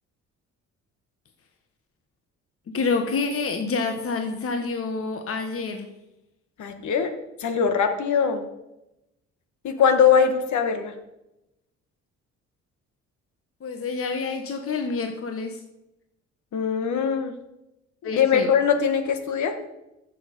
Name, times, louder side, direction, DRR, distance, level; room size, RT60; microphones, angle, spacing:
voice 1, 2.7-5.9 13.6-15.6 18.0-18.5, left 4 dB, 45° left, 5 dB, 1.4 m, -28 dB
voice 2, 6.6-7.1 7.4-8.4 9.6-10.9 16.5-17.3 18.1-19.5, left 7 dB, 75° left, 7 dB, 1.6 m, -21 dB
14.0 x 7.2 x 5.4 m, 0.92 s
cardioid pair, 90°, 30 cm